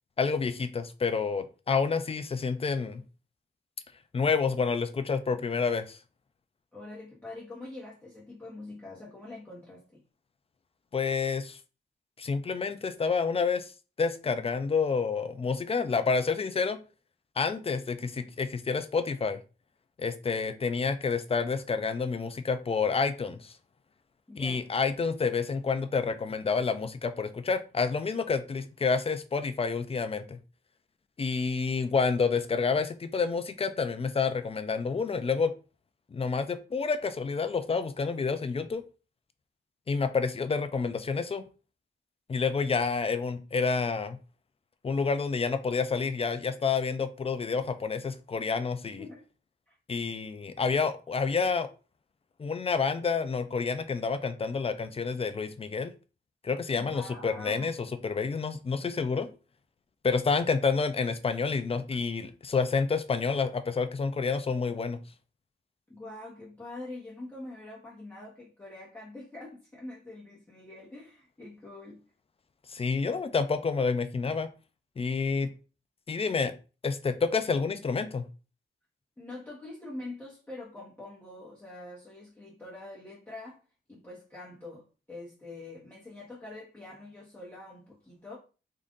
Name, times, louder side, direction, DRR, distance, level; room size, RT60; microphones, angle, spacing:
voice 1, 0.2-3.0 4.1-6.0 10.9-11.6 12.2-13.7 14.0-16.8 17.4-19.4 20.0-23.5 24.4-30.4 31.2-35.5 36.1-38.8 39.9-41.4 42.3-44.2 44.8-49.0 49.9-51.7 52.4-55.9 56.4-59.3 60.0-65.0 72.7-74.5 75.0-75.5 76.1-76.6 76.8-78.3, left 5 dB, 30° left, 10 dB, 0.4 m, -29 dB
voice 2, 6.7-10.0 24.3-24.7 49.0-49.2 49.7-49.8 56.7-57.7 61.9-62.0 65.9-72.0 79.2-83.6 83.9-88.4, left 2 dB, 10° left, -7 dB, 1.1 m, -44 dB
3.7 x 2.5 x 3.6 m, 0.34 s
wide cardioid pair, 140°, 21 cm